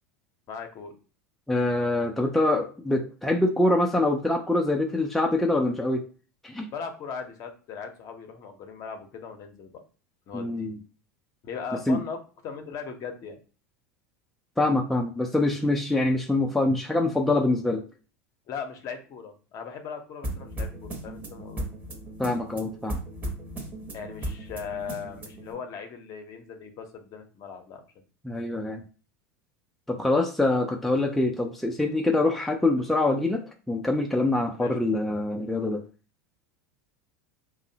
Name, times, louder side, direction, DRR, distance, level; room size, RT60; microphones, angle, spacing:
voice 1, 0.5-0.9 6.7-9.8 10.3-10.7 11.4-12.2 12.4-13.4 18.5-21.7 23.9-27.8 34.6-34.8, left 6 dB, 45° left, 6 dB, 0.6 m, -38 dB
voice 2, 1.5-6.1 6.4-6.7 10.3-10.8 11.9-12.0 14.6-17.8 22.2-23.0 28.2-28.8 29.9-35.8, left 2 dB, ahead, 1 dB, 0.4 m, -25 dB
sound 1, 20.2-25.5, right 1 dB, 20° right, 0.8 m, -36 dB
2.6 x 2.0 x 2.7 m, 0.36 s
hypercardioid pair, 85°, 8 cm